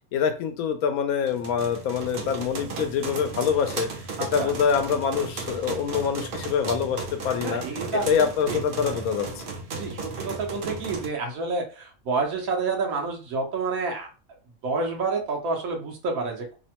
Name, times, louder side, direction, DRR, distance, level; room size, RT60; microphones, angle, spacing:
voice 1, 0.1-3.9 4.2-7.6 7.9-9.4, left 7 dB, 90° left, 7 dB, 1.0 m, -25 dB
sound 1, 1.3-11.1, right 4 dB, 55° right, 0.6 m, -35 dB
voice 2, 4.2-4.5 7.4-8.0 8.5-8.6 9.7-14.1 14.6-16.4, right 3 dB, 80° right, 1 dB, 1.3 m, -28 dB
3.2 x 2.1 x 2.8 m, 0.35 s
omnidirectional pair, 1.4 m